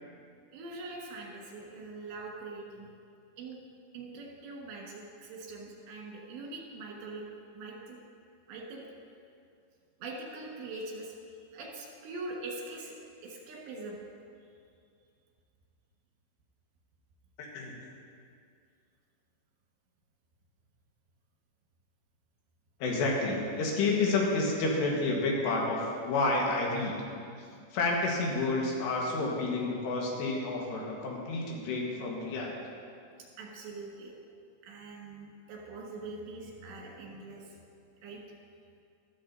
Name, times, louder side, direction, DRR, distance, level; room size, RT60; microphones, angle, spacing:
voice 1, 0.5-2.9 3.4-3.6 3.9-7.3 7.5-8.0 8.5-8.8 10.0-11.1 11.5-12.9 13.2-14.0 33.4-34.1 34.6-37.6 38.0-38.4, right 2 dB, 80° right, -2 dB, 3.9 m, -43 dB
voice 2, 17.4-17.8 22.8-26.9 27.7-32.5, left 3 dB, 75° left, -2 dB, 3.6 m, -30 dB
14.0 x 13.5 x 2.7 m, 2.4 s
omnidirectional pair, 5.1 m